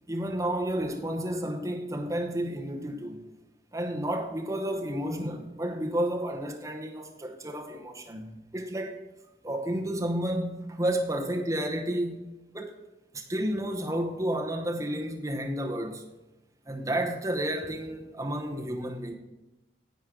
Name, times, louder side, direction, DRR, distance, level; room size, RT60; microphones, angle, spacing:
voice 1, 0.1-3.2 3.7-9.0 9.4-12.3 12.5-12.8 13.1-16.0 16.7-19.1, right 1 dB, 15° right, 0.9 m, -31 dB
10.5 x 8.2 x 3.8 m
head